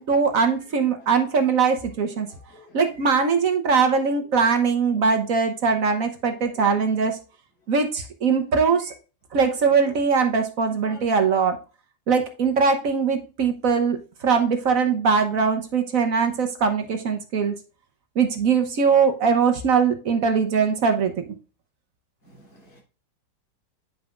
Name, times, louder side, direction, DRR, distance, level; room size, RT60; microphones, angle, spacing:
voice 1, 0.0-2.3 2.7-7.2 7.7-8.9 9.3-11.6 12.1-17.5 18.1-21.1, right 5 dB, 55° right, 6 dB, 1.2 m, -21 dB
voice 2, 2.5-2.8 6.6-6.7 10.9-11.0 22.5-22.8, left 3 dB, 90° left, -1 dB, 3.6 m, -47 dB
9.0 x 5.5 x 2.4 m, 0.35 s
omnidirectional pair, 1.9 m